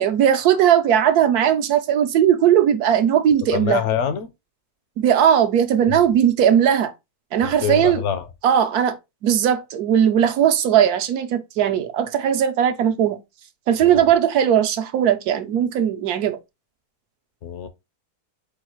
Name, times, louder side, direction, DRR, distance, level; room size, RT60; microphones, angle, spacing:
voice 1, 0.0-3.8 5.0-6.9 7.3-8.0 8.4-9.0 9.2-13.2 13.7-16.4, right 9 dB, 80° right, 1.2 m, -18 dB
voice 2, 3.5-4.3 6.0-6.1 7.4-8.3 13.8-14.1 17.4-17.7, left 8 dB, 65° left, 0.8 m, -25 dB
4.7 x 2.3 x 4.4 m
omnidirectional pair, 1.6 m